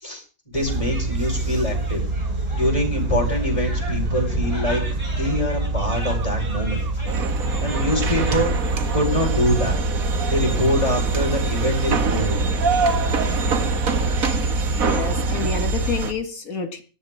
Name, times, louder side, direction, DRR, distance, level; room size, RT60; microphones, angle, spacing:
voice 1, 0.0-2.0 2.5-4.8 5.2-6.8 7.6-8.5 8.9-9.8 10.3-12.4, equal, 25° left, 0 dB, 5.1 m, -24 dB
sound 1, 0.5-15.1, right 1 dB, 20° right, 5.5 m, -39 dB
sound 2, 0.7-16.0, right 2 dB, 40° right, 0.6 m, -26 dB
sound 3, 7.1-16.1, right 4 dB, 75° right, 1.7 m, -25 dB
voice 2, 14.8-16.8, left 5 dB, 75° left, 7 dB, 2.4 m, -28 dB
18.0 x 12.0 x 3.7 m, 0.36 s
omnidirectional pair, 1.5 m